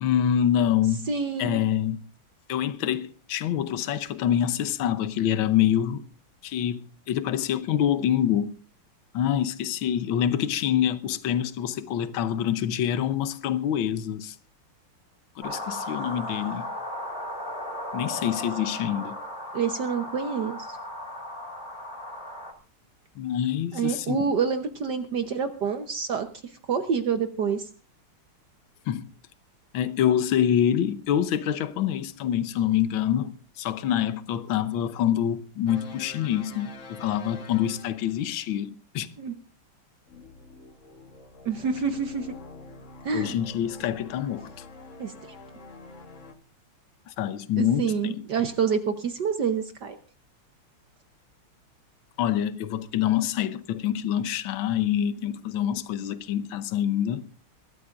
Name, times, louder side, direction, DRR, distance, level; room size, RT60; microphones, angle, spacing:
voice 1, 0.0-1.1 1.4-2.0 2.5-6.0 6.4-8.5 9.1-14.3 15.4-16.7 17.9-19.2 23.2-24.2 28.9-29.1 29.7-39.1 43.1-44.5 47.1-48.2 52.2-57.3, left 10 dB, 70° left, 1.6 m, -26 dB
voice 2, 1.1-1.6 19.5-20.8 23.7-26.3 26.7-27.7 39.2-39.3 41.4-42.3 43.0-43.3 45.0-45.1 47.6-50.0, right 6 dB, 60° right, 1.4 m, -27 dB
sound 1, 15.4-22.5, left 1 dB, 20° left, 2.3 m, -36 dB
sound 2, 35.7-38.3 40.1-46.3, left 3 dB, 40° left, 1.3 m, -46 dB
23.0 x 13.5 x 2.5 m
omnidirectional pair, 2.4 m